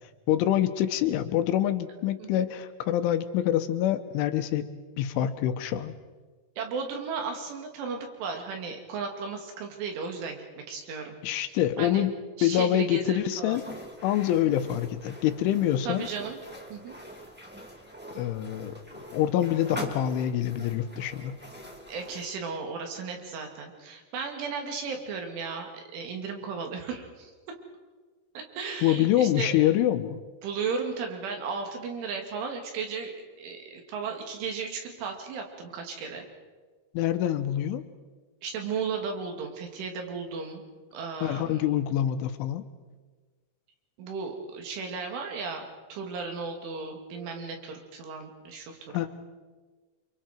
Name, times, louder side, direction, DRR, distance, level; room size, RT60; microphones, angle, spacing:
voice 1, 0.3-4.7 5.0-5.9 11.2-12.1 12.4-13.6 14.0-16.1 18.1-18.8 19.1-21.4 28.8-30.2 37.0-37.8 41.2-42.6 48.9-49.1, left 11 dB, 85° left, 9 dB, 3.5 m, -26 dB
voice 2, 6.6-11.2 11.8-12.0 12.4-13.6 14.3-14.5 15.8-16.4 16.7-17.0 21.9-27.3 28.4-29.7 30.4-36.3 38.4-40.6 40.9-41.7 44.0-48.8, right 5 dB, 85° right, 3 dB, 5.1 m, -35 dB
sound 1, 13.5-22.3, right 1 dB, 5° right, 1.5 m, -44 dB
29.0 x 26.0 x 4.5 m, 1.4 s
omnidirectional pair, 5.4 m